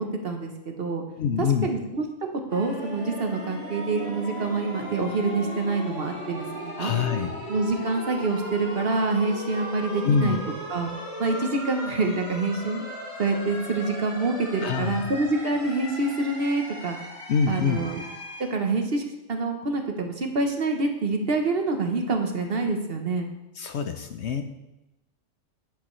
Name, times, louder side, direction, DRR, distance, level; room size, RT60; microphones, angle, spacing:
voice 1, 0.0-1.0 1.6-2.0 2.3-6.9 7.5-10.4 10.7-10.9 11.2-12.8 13.2-17.0 17.5-18.0 18.5-23.3, right 3 dB, 50° right, 4 dB, 1.0 m, -26 dB
voice 2, 1.2-1.7 6.8-7.4 10.0-10.4 14.6-15.1 17.3-17.8 23.6-24.4, left 6 dB, 65° left, 7 dB, 0.8 m, -25 dB
sound 1, 2.5-18.5, equal, 25° left, 1.7 m, -37 dB
10.5 x 7.7 x 3.1 m, 0.96 s
omnidirectional pair, 1.4 m